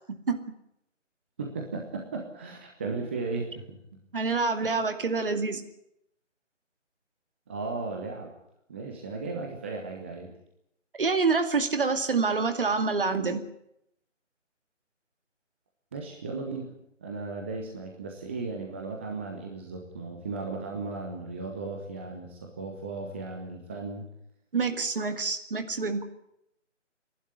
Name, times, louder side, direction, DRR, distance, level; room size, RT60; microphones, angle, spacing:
voice 1, 1.4-3.8 4.6-4.7 7.5-8.3 8.7-10.3 15.9-16.7 17.0-24.1, right 3 dB, 10° right, 1 dB, 1.0 m, -36 dB
voice 2, 4.1-5.6 11.0-13.4 24.5-26.0, right 4 dB, 45° right, 8 dB, 2.3 m, -27 dB
28.5 x 12.0 x 9.7 m, 0.78 s
figure-of-eight pair, 155°, 37 cm